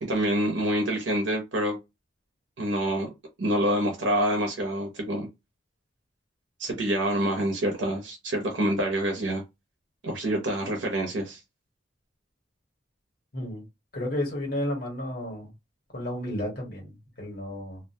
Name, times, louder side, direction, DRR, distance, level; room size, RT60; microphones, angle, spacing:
voice 1, 0.0-1.8 2.6-3.1 3.4-5.3 6.6-9.4 10.0-11.4, right 1 dB, 80° right, 0.7 m, -26 dB
voice 2, 13.3-13.6 13.9-15.5 15.9-17.8, left 1 dB, 55° left, 1.4 m, -32 dB
2.5 x 2.2 x 2.7 m
head